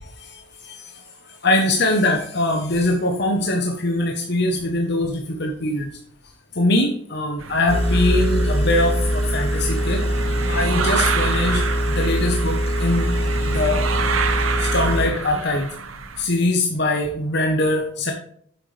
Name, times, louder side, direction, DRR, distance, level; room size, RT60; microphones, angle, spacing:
voice 1, 0.0-5.9 6.5-10.0 10.5-13.1 13.5-13.8 14.6-15.7 16.2-18.1, left 2 dB, 55° left, 3 dB, 1.1 m, -22 dB
sound 1, 7.4-16.3, right 5 dB, 85° right, 1.0 m, -28 dB
Engine, 7.7-15.1, equal, 30° left, 1.5 m, -22 dB
9.2 x 7.6 x 3.4 m, 0.63 s
head